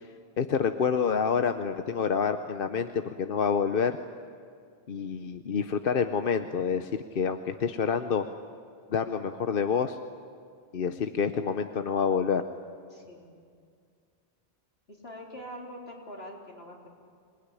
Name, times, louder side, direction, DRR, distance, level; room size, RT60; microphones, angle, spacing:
voice 1, 0.4-4.0 4.9-8.3 8.9-10.0 10.7-12.4, left 6 dB, 65° left, 8 dB, 1.0 m, -27 dB
voice 2, 12.9-13.3 14.9-17.0, equal, 80° left, -1 dB, 4.0 m, -44 dB
26.5 x 20.0 x 9.8 m, 2.2 s
omnidirectional pair, 1.0 m